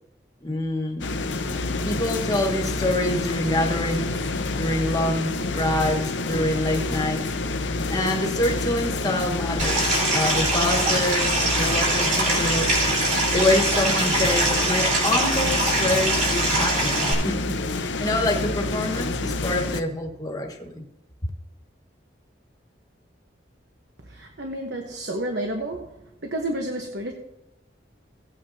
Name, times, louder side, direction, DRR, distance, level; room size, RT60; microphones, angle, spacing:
voice 1, 0.4-1.1 1.8-4.2 4.6-7.2 7.9-12.7 13.3-20.8, left 1 dB, 20° left, 2 dB, 1.5 m, -26 dB
sound 1, 1.0-19.8, left 2 dB, 85° left, 0.7 m, -28 dB
Stream, 9.6-17.1, right 2 dB, 45° right, 4.0 m, -23 dB
voice 2, 24.1-25.9 26.2-27.1, right 1 dB, 65° right, 3 dB, 1.2 m, -30 dB
17.5 x 8.7 x 2.8 m, 0.89 s
head